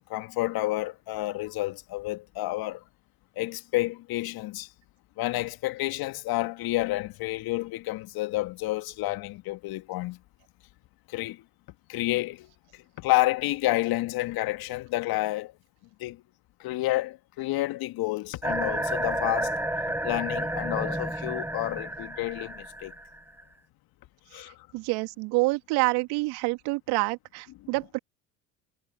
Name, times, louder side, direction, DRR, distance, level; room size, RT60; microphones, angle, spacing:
voice 1, 0.1-2.8 3.4-4.7 5.2-10.2 11.1-11.4 11.9-15.5 16.0-16.2 16.6-19.5 20.0-22.9 24.3-24.6, left 18 dB, 55° left, 1.9 m, -30 dB
sound 1, 18.4-23.4, right 1 dB, 5° right, 6.3 m, -31 dB
voice 2, 24.7-28.0, right 25 dB, 65° right, 2.5 m, -27 dB
hypercardioid pair, 70°, 43 cm